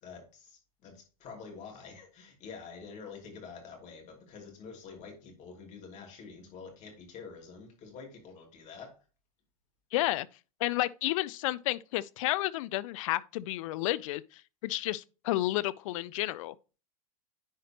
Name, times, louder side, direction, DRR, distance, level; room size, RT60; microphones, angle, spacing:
voice 1, 0.0-9.0, left 5 dB, 40° left, 2.9 m, -47 dB
voice 2, 9.9-10.3 10.6-16.5, left 17 dB, 65° left, 0.5 m, -31 dB
10.0 x 5.0 x 2.9 m
hypercardioid pair, 110°, 18 cm